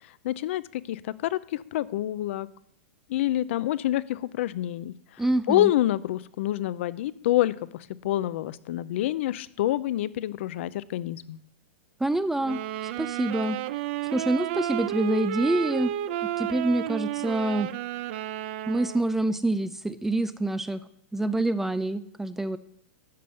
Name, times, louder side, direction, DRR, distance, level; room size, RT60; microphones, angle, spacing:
voice 1, 0.2-2.5 3.1-4.9 5.5-11.4, left 14 dB, 60° left, 16 dB, 0.6 m, -27 dB
voice 2, 5.2-5.7 12.0-12.6 13.0-13.6 14.1-15.9 16.2-17.7 18.7-20.8 21.1-22.6, right 2 dB, 5° right, 14 dB, 0.4 m, -26 dB
sound 1, 12.4-19.2, right 12 dB, 55° right, 0.6 m, -32 dB
12.5 x 5.4 x 7.8 m, 0.68 s
supercardioid pair, 150°, 7 cm